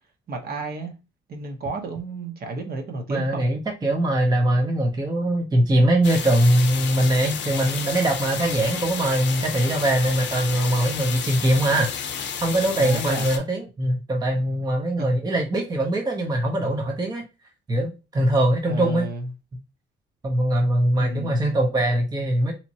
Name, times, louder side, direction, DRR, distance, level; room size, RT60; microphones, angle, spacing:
voice 1, 0.3-0.9 1.3-3.4 12.7-13.3 15.0-15.1 18.7-19.3 21.0-21.5, right 2 dB, 50° right, 0.8 m, -31 dB
voice 2, 3.1-11.9 12.4-17.2 17.7-19.1 20.2-22.5, right 1 dB, 20° right, 0.6 m, -22 dB
sound 1, 6.0-13.4, left 7 dB, 65° left, 0.5 m, -31 dB
2.9 x 2.1 x 2.7 m
cardioid pair, 90°, 20 cm